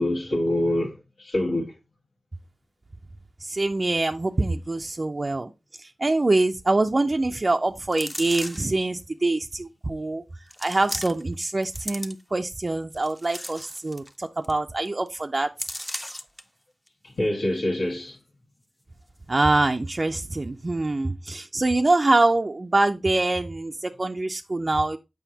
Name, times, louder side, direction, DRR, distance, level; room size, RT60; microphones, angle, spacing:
voice 1, 0.0-1.7 17.0-18.2, left 1 dB, 75° left, 1.5 m, -25 dB
voice 2, 3.5-5.5 6.0-10.2 10.6-15.5 19.3-25.0, right 2 dB, 40° right, 0.5 m, -24 dB
sound 1, 7.9-8.8 9.5-9.6 10.5-11.3 11.6-12.4 12.9-14.1 14.4-14.6 14.9-15.1 15.6-16.4 16.9-17.0, equal, 5° left, 0.6 m, -36 dB
7.0 x 5.3 x 2.7 m
cardioid pair, 50°, 0 cm